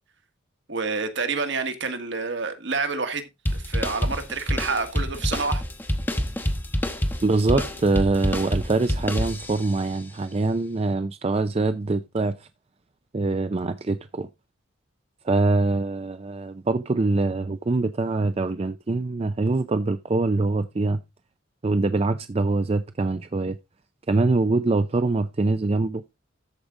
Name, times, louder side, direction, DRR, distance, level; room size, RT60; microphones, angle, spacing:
voice 1, 0.7-5.6 7.5-7.6, right 4 dB, 60° right, 1.5 m, -28 dB
sound 1, 3.5-9.8, equal, 10° left, 0.9 m, -27 dB
voice 2, 7.2-12.5 13.1-14.3 15.2-21.0 21.6-23.6 24.1-26.0, right 3 dB, 30° right, 0.4 m, -24 dB
13.5 x 5.1 x 3.7 m
head